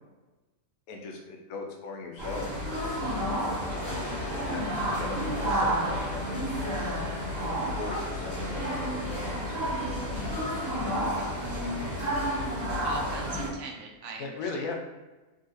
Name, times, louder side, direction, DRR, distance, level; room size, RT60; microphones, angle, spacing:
voice 1, 0.9-2.5 3.7-6.5 7.7-9.8 14.2-14.8, left 4 dB, 70° left, 1 dB, 1.0 m, -39 dB
sound 1, 2.2-13.5, equal, 40° right, 1.4 m, -30 dB
sound 2, 2.3-10.4 10.7-10.8, left 1 dB, 55° left, 0.4 m, -44 dB
voice 2, 12.8-14.6, right 3 dB, 70° right, 1 dB, 1.0 m, -41 dB
3.8 x 2.4 x 2.6 m, 1.1 s
omnidirectional pair, 1.6 m